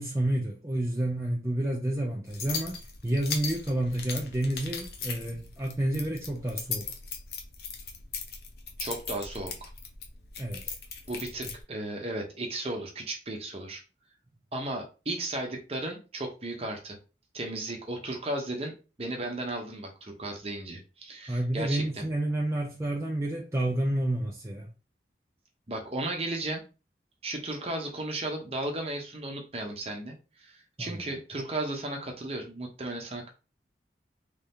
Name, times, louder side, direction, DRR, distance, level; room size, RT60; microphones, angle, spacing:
voice 1, 0.0-6.9 10.4-10.6 21.3-24.7 30.8-31.0, right 1 dB, 15° right, 0.4 m, -30 dB
sound 1, 2.3-11.6, left 5 dB, 60° left, 0.7 m, -39 dB
voice 2, 8.8-9.7 11.1-13.8 14.5-17.0 17.3-22.1 25.7-26.6 27.2-33.3, right 2 dB, 35° right, 0.8 m, -35 dB
3.3 x 2.7 x 3.5 m
head